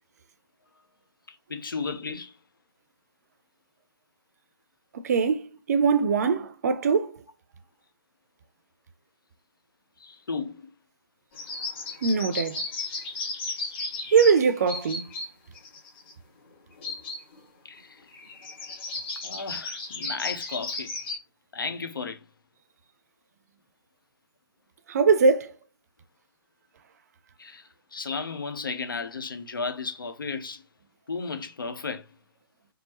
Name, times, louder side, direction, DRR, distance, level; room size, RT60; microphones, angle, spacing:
voice 1, 1.3-2.3 10.0-10.7 17.6-18.0 19.2-20.9 21.5-22.2 27.4-30.6 31.1-32.1, left 4 dB, 60° left, 1.1 m, -34 dB
voice 2, 4.9-7.2 12.0-12.6 14.1-15.1 24.9-25.5, right 5 dB, 45° right, 0.6 m, -22 dB
sound 1, 11.3-15.3 15.5-16.1 16.8-17.4 17.8-17.9 18.1-21.2, left 3 dB, 30° left, 2.2 m, -35 dB
4.4 x 3.1 x 3.0 m
figure-of-eight pair, 135°, 13 cm